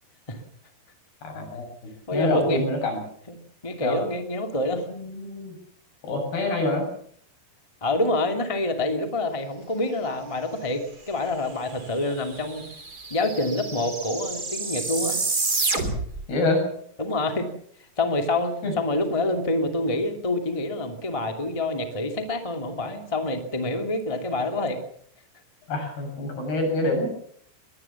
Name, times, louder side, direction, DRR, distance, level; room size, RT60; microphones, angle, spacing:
voice 1, 1.2-1.6 2.1-3.0 3.8-4.0 4.9-5.6 6.0-6.9 16.3-16.6 18.6-18.7 25.7-27.1, left 2 dB, 65° left, 3 dB, 9.4 m, -26 dB
voice 2, 2.1-2.6 3.3-3.4 3.6-4.9 7.8-12.6 13.1-15.2 17.0-17.5 18.0-24.8, left 2 dB, 10° left, 5 dB, 1.5 m, -27 dB
sound 1, 11.7-11.8 12.0-16.2, right 3 dB, 25° right, 3.2 m, -29 dB
22.0 x 20.5 x 7.2 m, 0.65 s
omnidirectional pair, 4.9 m